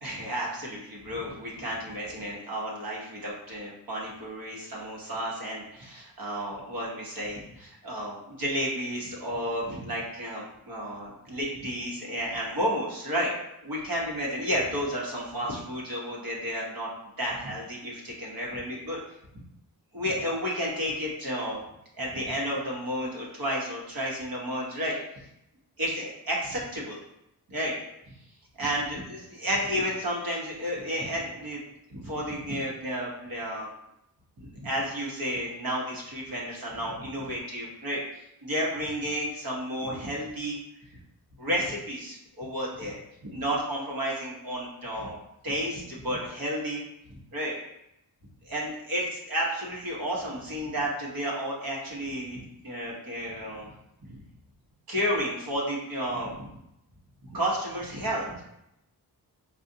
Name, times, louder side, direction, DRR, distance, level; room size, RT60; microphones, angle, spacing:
voice 1, 0.0-13.3 13.6-16.9 17.2-19.0 19.9-21.6 22.0-25.0 25.8-27.0 27.5-27.7 28.6-31.6 31.9-33.7 34.4-38.0 38.4-40.6 41.4-45.2 45.4-46.8 47.1-47.5 48.4-53.7 54.1-54.2 54.9-56.5 57.2-58.5, equal, 60° right, -4 dB, 1.1 m, -32 dB
4.7 x 2.4 x 2.7 m, 0.83 s
wide cardioid pair, 140°, 39 cm